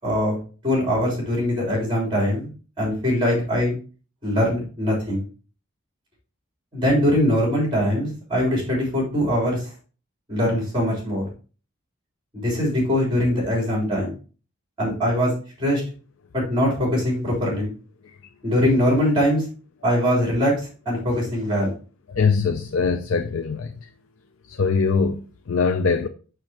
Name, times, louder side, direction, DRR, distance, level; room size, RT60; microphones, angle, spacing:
voice 1, 0.0-0.4 0.6-2.5 2.8-3.8 4.2-5.2 6.7-9.7 10.3-11.3 12.3-14.1 14.8-15.3 15.6-15.8 16.3-17.7 18.4-19.4 19.8-21.7, equal, 20° right, 3.6 m, -22 dB
voice 2, 22.1-23.7 24.5-26.1, left 5 dB, 75° left, 0.5 m, -22 dB
6.5 x 6.2 x 2.9 m
head